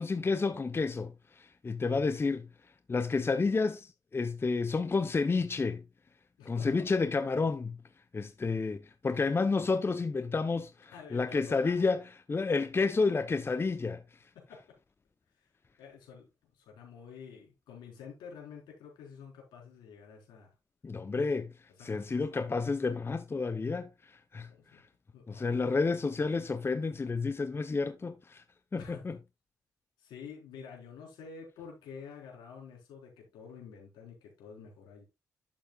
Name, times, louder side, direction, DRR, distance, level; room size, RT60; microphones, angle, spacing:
voice 1, 0.0-2.5 2.9-5.8 6.4-7.8 8.1-14.0 20.8-21.5 21.8-24.8 25.3-28.4 28.7-29.2, left 4 dB, 30° left, 0.7 m, -30 dB
voice 2, 6.4-6.8 10.9-11.7 14.3-14.6 15.8-16.3 16.6-20.5 21.8-22.5 24.5-24.8 25.1-26.0 28.7-29.0 30.0-35.0, left 6 dB, 75° left, 4.4 m, -49 dB
11.0 x 7.3 x 2.4 m
hypercardioid pair, 45°, 8 cm